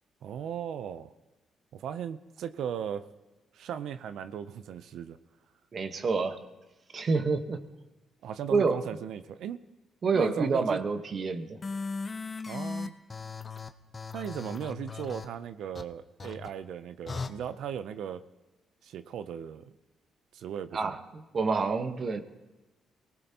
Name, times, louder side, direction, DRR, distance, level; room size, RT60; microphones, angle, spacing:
voice 1, 0.2-1.1 1.7-3.0 3.5-5.2 8.2-9.6 10.1-10.8 12.5-13.0 14.1-18.2 18.8-19.7 20.3-21.0, right 9 dB, 75° right, 12 dB, 0.6 m, -37 dB
voice 2, 5.7-6.4 6.9-7.6 8.5-8.8 10.0-11.6 20.7-22.2, right 4 dB, 45° right, 8 dB, 1.2 m, -28 dB
sound 1, 11.6-15.3 15.7-15.8 16.2-16.5 17.1-17.3, left 4 dB, 35° left, 0.9 m, -37 dB
23.5 x 18.5 x 2.9 m, 1.1 s
cardioid pair, 90°, 0 cm